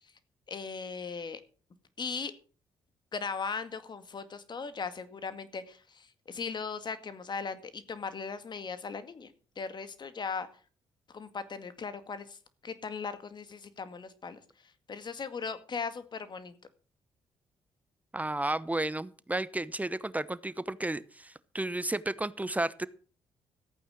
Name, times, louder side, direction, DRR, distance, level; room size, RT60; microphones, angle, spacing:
voice 1, 0.5-1.4 2.0-2.3 3.1-10.5 11.1-14.4 14.9-16.6, left 5 dB, 45° left, 11 dB, 2.0 m, -38 dB
voice 2, 18.1-22.9, right 2 dB, 15° right, 16 dB, 0.9 m, -32 dB
14.5 x 8.9 x 6.4 m, 0.40 s
supercardioid pair, 55°, 10 cm